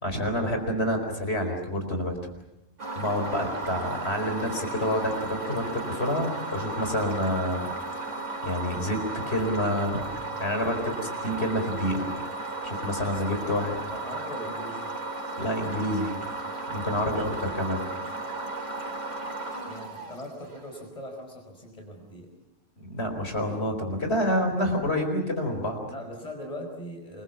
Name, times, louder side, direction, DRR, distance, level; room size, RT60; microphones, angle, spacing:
voice 1, 0.0-2.2 2.9-8.0 8.4-9.0 9.3-10.0 10.4-12.1 12.6-13.8 15.4-16.1 16.7-17.8 22.8-25.8, equal, 55° left, 5 dB, 4.9 m, -28 dB
sound 1, 2.8-20.8, right 2 dB, 70° right, 3.9 m, -35 dB
voice 2, 13.1-15.0 17.1-17.5 19.7-22.3 25.9-27.2, left 1 dB, 30° left, 2 dB, 5.1 m, -41 dB
28.0 x 22.0 x 7.3 m, 0.88 s
omnidirectional pair, 1.3 m